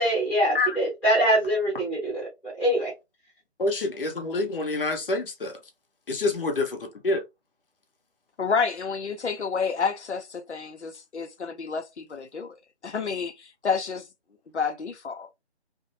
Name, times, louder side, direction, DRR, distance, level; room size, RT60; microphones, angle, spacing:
voice 1, 0.0-2.2 2.6-2.9, right 1 dB, 5° left, 0.9 m, -23 dB
voice 2, 3.6-5.6 6.1-7.2, left 2 dB, 55° left, 0.8 m, -27 dB
voice 3, 8.4-12.5 12.8-14.1 14.5-15.3, left 5 dB, 90° left, 0.7 m, -29 dB
2.6 x 2.1 x 2.6 m
figure-of-eight pair, 155°, 33 cm